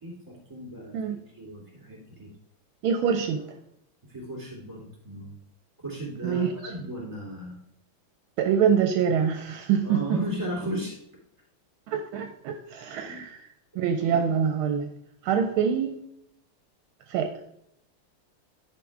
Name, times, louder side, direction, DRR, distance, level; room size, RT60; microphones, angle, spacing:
voice 1, 0.0-1.0 1.3-2.3 4.1-5.3 5.8-7.5 9.8-10.9 13.0-13.2, equal, 15° right, -4 dB, 3.1 m, -35 dB
voice 2, 2.8-3.4 6.2-6.5 8.4-10.2 11.9-13.4 13.8-14.9 15.2-16.0 17.1-17.3, right 7 dB, 80° right, 6 dB, 1.4 m, -25 dB
10.0 x 4.9 x 3.6 m, 0.77 s
omnidirectional pair, 2.4 m